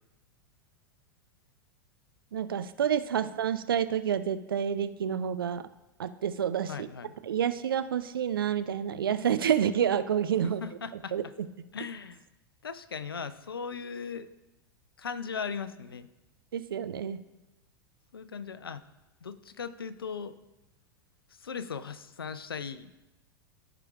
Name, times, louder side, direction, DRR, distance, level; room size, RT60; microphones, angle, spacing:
voice 1, 2.3-5.6 6.0-6.9 7.2-10.6 11.1-11.2 16.5-17.2, right 9 dB, 70° right, 12 dB, 0.5 m, -28 dB
voice 2, 6.7-7.1 10.4-11.3 11.7-12.2 12.6-14.3 15.0-16.1 18.1-18.8 19.2-20.4 21.4-23.0, left 6 dB, 80° left, 15 dB, 0.5 m, -38 dB
14.5 x 4.9 x 2.4 m, 1.0 s
figure-of-eight pair, 90°, 12 cm